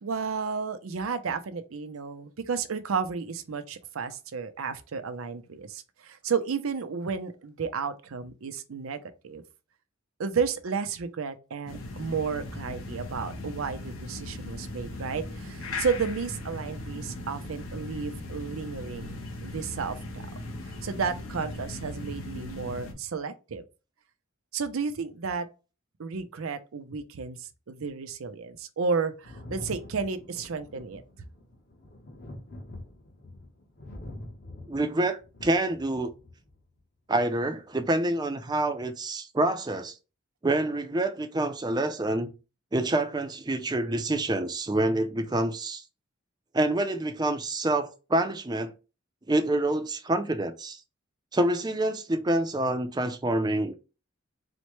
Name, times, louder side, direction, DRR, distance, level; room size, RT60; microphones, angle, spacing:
voice 1, 0.0-9.4 10.2-19.1 19.4-20.3 20.6-23.6 24.5-25.5 26.0-31.0, right 5 dB, 85° right, 0.5 m, -32 dB
sound 1, 11.7-22.9, left 2 dB, 85° left, 0.9 m, -38 dB
Thunder, 29.2-36.6 37.7-37.8, left 1 dB, 50° left, 1.0 m, -45 dB
voice 2, 34.7-36.1 37.1-40.0 40.4-42.3 42.7-45.8 46.5-48.7 49.3-50.8 51.3-53.7, right 1 dB, 20° right, 0.4 m, -27 dB
4.2 x 2.1 x 3.0 m
head